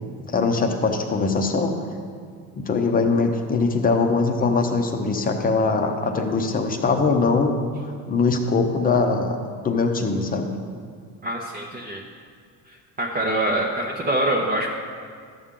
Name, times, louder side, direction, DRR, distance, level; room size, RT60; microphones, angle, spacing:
voice 1, 0.3-1.7 2.6-7.6 7.8-9.4 9.6-10.5, left 4 dB, 25° left, 5 dB, 0.8 m, -22 dB
voice 2, 11.2-12.0 12.7-14.7, right 1 dB, 25° right, -1 dB, 0.7 m, -25 dB
12.5 x 7.1 x 3.7 m, 2.1 s
cardioid pair, 145°, 34 cm